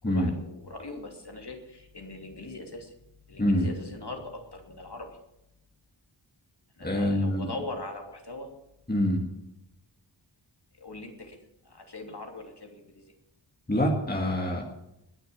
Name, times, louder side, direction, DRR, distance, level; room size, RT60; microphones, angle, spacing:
voice 1, 0.0-2.9 3.3-5.2 6.8-8.5 10.7-13.1, left 2 dB, 60° left, 3 dB, 2.9 m, -41 dB
voice 2, 6.8-7.5 8.9-9.3 13.7-14.6, left 1 dB, 20° left, 0 dB, 2.1 m, -25 dB
21.0 x 7.0 x 7.3 m, 0.86 s
wide cardioid pair, 60°, 45 cm